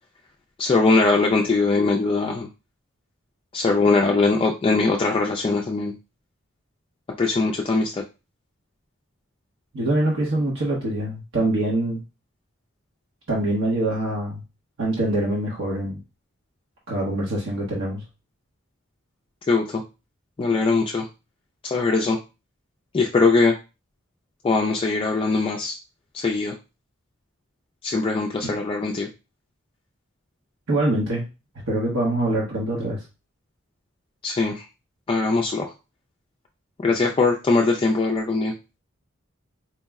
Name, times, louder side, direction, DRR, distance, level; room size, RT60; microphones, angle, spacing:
voice 1, 0.6-2.5 3.5-5.9 7.2-8.0 19.5-19.8 20.4-21.1 21.7-22.2 22.9-23.5 24.4-25.8 26.1-26.5 27.8-29.1 34.2-34.7 35.1-35.7 36.8-38.5, left 3 dB, 25° left, 0 dB, 0.3 m, -21 dB
voice 2, 9.7-12.0 13.3-14.4 14.8-16.0 16.9-18.0 28.4-28.5 30.7-31.3 31.7-33.0, right 1 dB, 70° right, -4 dB, 0.9 m, -24 dB
4.5 x 2.1 x 3.5 m, 0.29 s
head